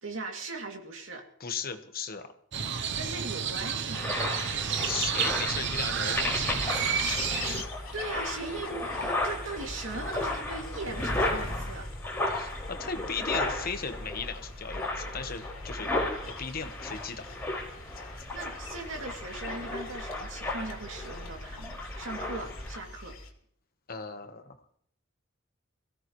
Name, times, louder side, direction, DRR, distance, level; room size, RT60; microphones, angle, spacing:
voice 1, 0.0-1.3 3.0-4.2 7.9-11.9 18.3-23.2, right 3 dB, 75° right, 2 dB, 2.6 m, -39 dB
voice 2, 1.4-2.3 4.8-7.1 12.3-15.9 16.3-17.3 23.9-24.6, left 5 dB, 45° left, 8 dB, 1.2 m, -37 dB
Crow, 2.5-7.6, right 7 dB, 60° right, 0.7 m, -30 dB
sound 1, 3.9-22.8, left 2 dB, 10° left, 5.2 m, -35 dB
sound 2, 6.5-23.3, left 2 dB, 85° left, 2.9 m, -42 dB
23.5 x 16.5 x 3.1 m, 0.64 s
head